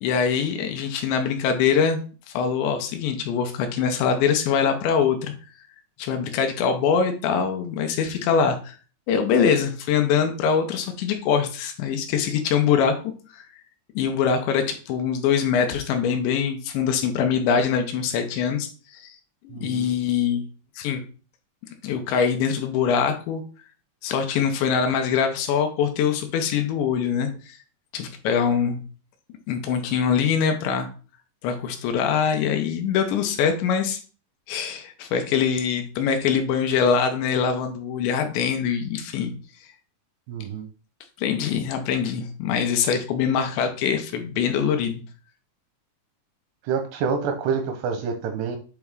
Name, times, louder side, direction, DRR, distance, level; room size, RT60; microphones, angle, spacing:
voice 1, 0.0-2.0 2.3-5.3 6.0-8.8 9.1-12.9 13.4-13.5 14.0-19.2 19.4-20.4 20.8-21.0 21.8-23.4 24.0-27.6 27.9-28.8 29.5-30.9 31.4-34.0 34.5-39.3 41.2-45.0, left 7 dB, 85° left, 6 dB, 2.9 m, -23 dB
voice 2, 19.5-19.9 40.3-40.7 46.7-48.6, right 6 dB, 85° right, 6 dB, 2.5 m, -27 dB
8.3 x 3.5 x 3.5 m, 0.37 s
omnidirectional pair, 5.3 m